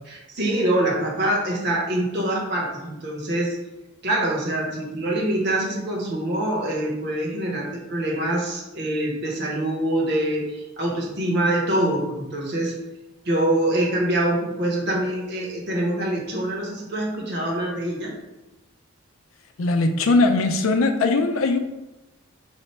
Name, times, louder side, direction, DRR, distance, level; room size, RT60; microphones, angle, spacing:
voice 1, 0.1-3.6 4.0-12.7 13.2-18.1, right 1 dB, 50° right, -2 dB, 1.1 m, -25 dB
voice 2, 19.6-21.6, left 3 dB, 70° left, 6 dB, 0.5 m, -20 dB
4.8 x 2.2 x 4.3 m, 1.0 s
head